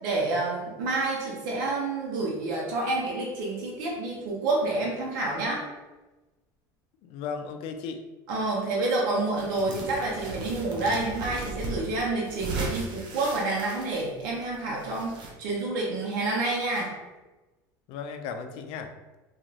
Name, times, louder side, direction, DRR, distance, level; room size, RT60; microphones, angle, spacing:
voice 1, 0.0-5.6 8.3-16.9, right 2 dB, 85° right, -3 dB, 0.8 m, -28 dB
voice 2, 7.0-8.0 17.9-18.9, left 6 dB, 65° left, 6 dB, 0.4 m, -35 dB
sound 1, 9.3-15.3, right 2 dB, 50° right, 0.7 m, -37 dB
2.9 x 2.4 x 2.7 m, 1.1 s
supercardioid pair, 110°, 10 cm